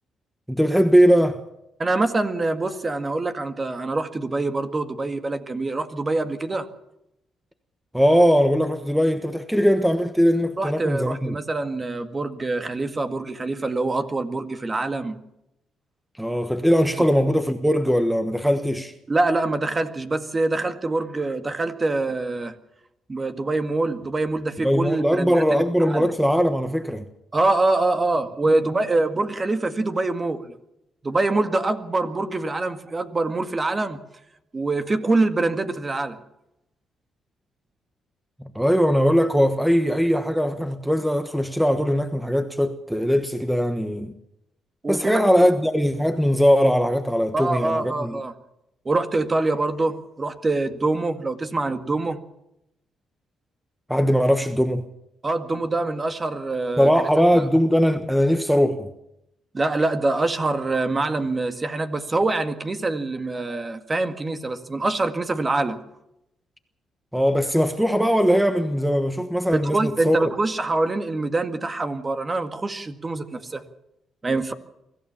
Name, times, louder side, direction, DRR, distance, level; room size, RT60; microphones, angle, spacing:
voice 1, 0.5-1.4 7.9-11.4 16.2-18.9 24.6-27.0 38.5-44.1 44.9-48.2 53.9-54.8 56.8-58.9 67.1-70.3, equal, 5° right, 1.2 m, -20 dB
voice 2, 1.8-6.7 10.6-15.2 19.1-22.6 23.1-26.1 27.3-30.5 31.0-34.0 34.5-36.2 44.8-45.2 47.3-48.3 48.9-52.2 55.2-56.9 59.5-65.8 69.5-73.6 74.2-74.5, right 2 dB, 25° right, 2.0 m, -25 dB
24.0 x 15.0 x 7.2 m
cardioid pair, 90°, 0 cm